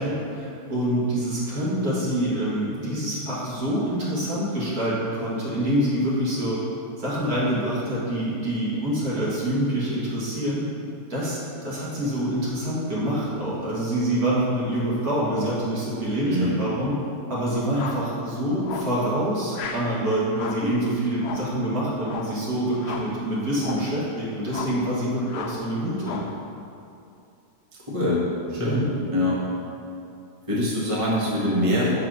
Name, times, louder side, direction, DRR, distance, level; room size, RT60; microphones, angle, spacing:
voice 1, 0.0-6.6 7.0-10.6 11.1-11.4 11.6-16.9 17.3-26.2 28.6-28.9, right 1 dB, 65° right, -8 dB, 2.2 m, -26 dB
voice 2, 16.2-16.6 27.9-28.2 28.5-28.8 29.1-29.4 30.5-31.9, left 1 dB, 20° right, -7 dB, 1.4 m, -23 dB
sound 1, 17.7-18.1 18.6-19.0 19.5-19.9 20.3-20.7 21.2-21.6 22.0-22.4 22.8-23.2 23.6-23.9 24.5-24.8 25.3-25.6 26.0-26.4, left 6 dB, 75° left, 1.1 m, -35 dB
7.2 x 4.1 x 6.2 m, 2.6 s
omnidirectional pair, 1.7 m